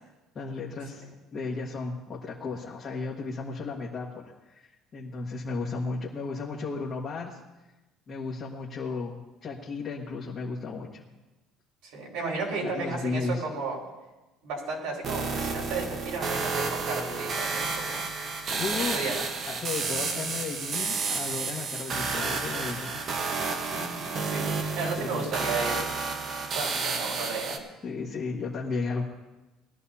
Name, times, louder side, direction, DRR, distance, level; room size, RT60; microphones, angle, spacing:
voice 1, 0.3-1.0 1.3-7.4 8.1-9.1 9.4-11.0 12.6-13.4 18.3-19.1 19.5-23.0 25.0-25.5 27.8-29.0, left 4 dB, 25° left, -4 dB, 1.4 m, -34 dB
voice 2, 11.8-13.8 14.4-18.0 18.9-19.2 23.7-25.8 26.5-27.6, right 3 dB, 70° right, -3 dB, 4.9 m, -33 dB
sound 1, 15.0-27.6, right 4 dB, 35° right, 1.1 m, -31 dB
21.0 x 13.0 x 2.8 m, 1.1 s
cardioid pair, 175°, 0 cm